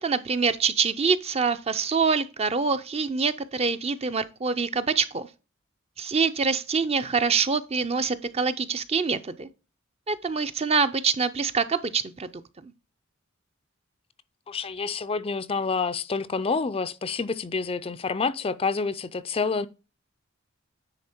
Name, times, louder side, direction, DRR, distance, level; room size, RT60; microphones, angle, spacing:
voice 1, 0.0-5.3 6.0-9.5 10.1-12.3 12.6-12.7, right 5 dB, 30° right, 0.5 m, -25 dB
voice 2, 14.5-19.7, left 4 dB, 30° left, 0.4 m, -28 dB
9.8 x 3.8 x 4.4 m
head